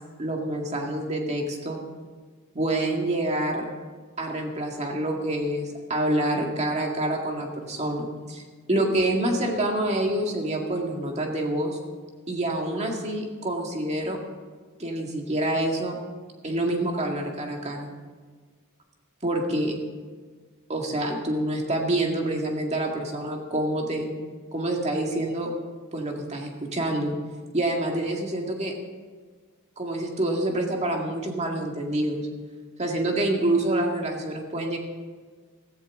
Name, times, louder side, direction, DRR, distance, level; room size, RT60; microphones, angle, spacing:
voice 1, 0.2-1.8 2.5-3.6 4.2-11.8 12.3-14.2 14.8-16.0 16.4-17.9 19.2-19.7 20.7-24.1 24.5-25.5 25.9-27.1 27.5-28.7 29.8-32.3 32.8-34.8, right 1 dB, 30° right, 1 dB, 2.0 m, -27 dB
15.5 x 15.0 x 3.8 m, 1.5 s
head